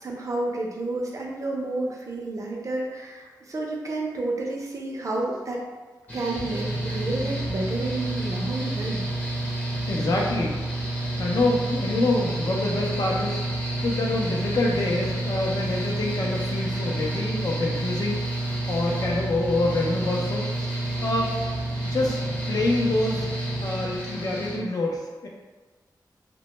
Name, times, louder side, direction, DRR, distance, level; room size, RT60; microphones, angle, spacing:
voice 1, 0.0-5.6 6.1-9.0, right 2 dB, 45° right, -1 dB, 0.5 m, -30 dB
Mechanical fan, 6.1-24.6, right 1 dB, 20° left, 0.7 m, -29 dB
voice 2, 9.9-10.7 11.2-13.4 13.8-18.4 18.7-20.7 21.0-21.3 21.8-22.2 22.5-23.3 23.6-25.3, left 2 dB, 55° left, -1 dB, 0.5 m, -26 dB
2.1 x 2.0 x 2.9 m, 1.3 s
wide cardioid pair, 85°, 8 cm